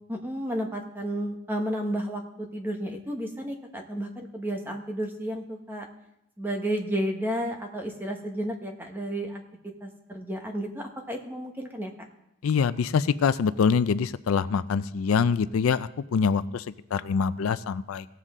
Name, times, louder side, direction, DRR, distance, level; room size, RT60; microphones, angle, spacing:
voice 1, 0.1-5.9 6.4-9.4 9.8-11.9, equal, 10° right, 2 dB, 1.0 m, -32 dB
voice 2, 12.4-16.6 16.9-18.1, left 6 dB, 80° left, 15 dB, 0.4 m, -24 dB
17.5 x 7.6 x 3.6 m, 0.85 s
head